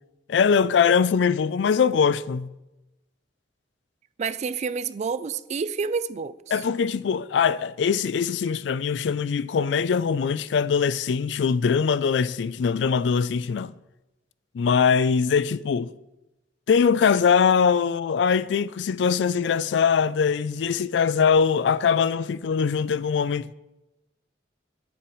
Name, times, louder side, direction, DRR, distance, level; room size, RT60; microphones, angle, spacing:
voice 1, 0.3-2.5 6.5-13.7 14.5-15.9 16.7-23.5, left 6 dB, 75° left, 0.4 m, -22 dB
voice 2, 4.2-6.6, right 5 dB, 40° right, 0.3 m, -29 dB
12.5 x 9.9 x 3.1 m
head